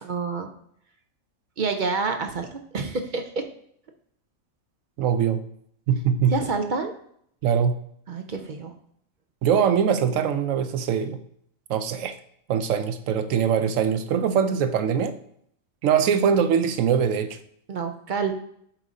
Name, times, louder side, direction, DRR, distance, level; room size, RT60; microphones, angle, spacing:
voice 1, 0.0-0.5 1.6-3.4 6.3-6.9 8.1-8.7 17.7-18.4, right 4 dB, 55° right, 6 dB, 0.6 m, -28 dB
voice 2, 5.0-5.4 5.9-6.3 7.4-7.8 9.4-11.2 11.7-12.2 12.5-15.1 15.8-17.4, right 7 dB, 85° right, 9 dB, 1.0 m, -22 dB
7.3 x 2.7 x 4.9 m, 0.68 s
omnidirectional pair, 1.3 m